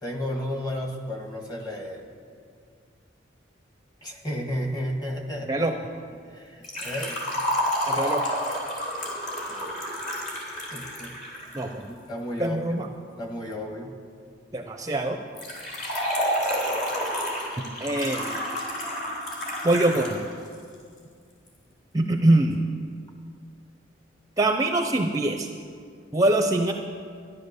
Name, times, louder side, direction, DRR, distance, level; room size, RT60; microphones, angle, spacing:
voice 1, 0.0-2.1 4.0-5.7 6.2-7.2 9.5-9.9 10.7-11.2 11.9-12.9 13.2-14.0, left 1 dB, 20° left, 2 dB, 1.6 m, -33 dB
Liquid, 6.6-11.6 15.4-20.2 20.5-20.6 21.5-21.6, equal, 45° left, 3.3 m, -29 dB
voice 2, 7.9-8.2 11.5-11.9 12.4-12.9 14.5-15.2 17.8-18.3 19.6-20.2 21.9-22.6 24.4-25.5 26.1-26.7, right 1 dB, 20° right, 5 dB, 0.6 m, -23 dB
13.0 x 11.0 x 6.7 m, 2.2 s
head